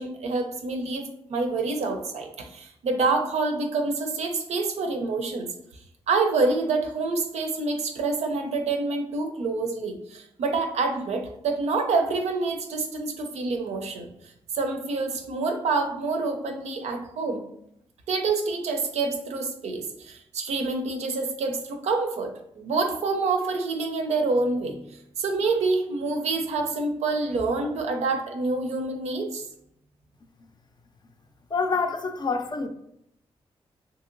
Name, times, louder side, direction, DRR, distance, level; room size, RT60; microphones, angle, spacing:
voice 1, 0.0-5.5 6.1-14.1 14.5-17.4 18.1-24.8 25.2-29.5, right 3 dB, 85° right, 4 dB, 0.5 m, -27 dB
voice 2, 31.5-32.7, left 4 dB, 40° left, 6 dB, 0.4 m, -26 dB
2.8 x 2.8 x 2.5 m, 0.74 s
cardioid pair, 65°, 11 cm